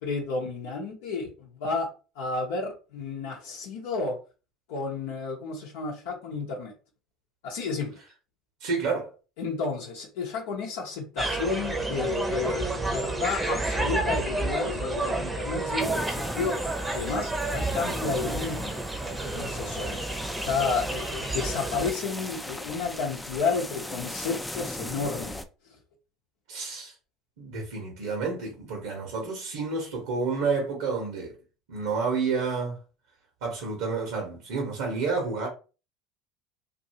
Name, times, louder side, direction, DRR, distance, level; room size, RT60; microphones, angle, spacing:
voice 1, 0.0-1.9 2.2-4.2 4.7-6.7 7.4-8.0 9.4-18.8 19.3-20.0 20.4-25.4, left 4 dB, 80° left, 0.7 m, -31 dB
voice 2, 8.6-9.1 26.5-26.9 27.4-31.3 31.7-32.8 33.4-35.5, right 4 dB, 75° right, 1.0 m, -29 dB
sound 1, 11.2-21.9, right 2 dB, 20° right, 0.7 m, -30 dB
sound 2, 15.8-25.5, left 1 dB, 10° left, 0.4 m, -38 dB
2.7 x 2.5 x 2.7 m
hypercardioid pair, 75°, 0 cm